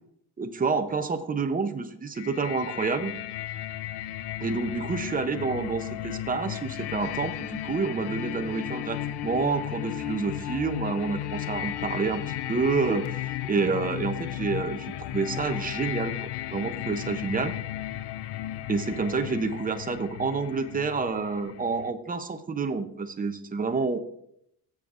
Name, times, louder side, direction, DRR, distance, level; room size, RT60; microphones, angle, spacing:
voice 1, 0.4-3.1 4.4-17.5 18.7-24.0, right 4 dB, 20° right, 8 dB, 0.7 m, -28 dB
sound 1, 2.2-21.9, left 13 dB, 80° left, 0.5 m, -35 dB
16.5 x 7.1 x 2.5 m, 0.73 s
cardioid pair, 140°, 39 cm